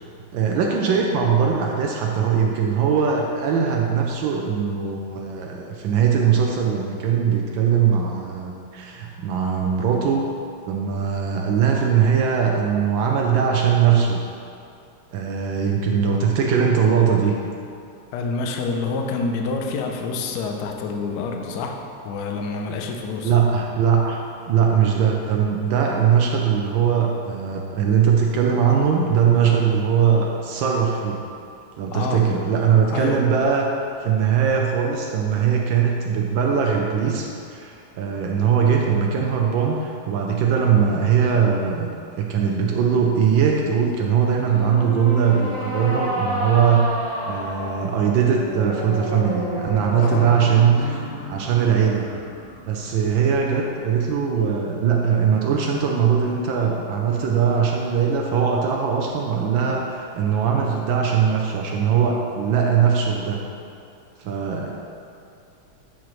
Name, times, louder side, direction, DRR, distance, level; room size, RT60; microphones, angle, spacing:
voice 1, 0.3-10.2 10.7-14.2 15.1-17.3 23.2-24.2 24.5-31.2 31.8-33.7 34.0-41.9 42.2-46.9 47.3-52.1 52.7-63.4 64.2-64.7, right 7 dB, 75° right, 0 dB, 1.2 m, -20 dB
voice 2, 18.1-23.3 31.9-32.3 32.9-33.3 50.0-50.3, left 4 dB, 70° left, 3 dB, 1.0 m, -27 dB
sound 1, 44.5-53.9, right 1 dB, 25° right, 0.7 m, -31 dB
9.1 x 4.4 x 3.1 m, 2.5 s
omnidirectional pair, 2.3 m